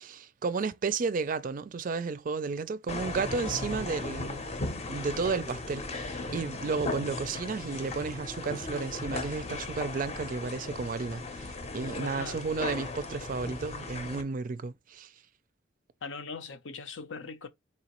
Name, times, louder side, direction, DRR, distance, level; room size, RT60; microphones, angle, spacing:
voice 1, 0.0-4.5 4.9-15.1, right 4 dB, 45° right, 0.4 m, -33 dB
sound 1, 2.9-14.2, left 2 dB, 35° left, 0.7 m, -37 dB
voice 2, 12.0-12.4 16.0-17.5, left 4 dB, 80° left, 0.7 m, -40 dB
4.3 x 3.0 x 2.9 m
head